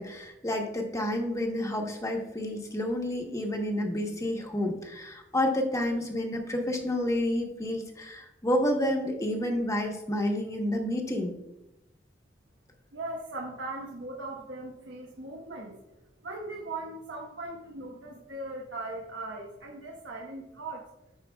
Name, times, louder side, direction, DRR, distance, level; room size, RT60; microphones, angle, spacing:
voice 1, 0.0-11.3, left 1 dB, 15° left, 2 dB, 1.0 m, -29 dB
voice 2, 12.9-15.9 16.2-20.9, right 2 dB, 75° right, -2 dB, 1.1 m, -39 dB
15.5 x 5.2 x 2.3 m, 0.94 s
head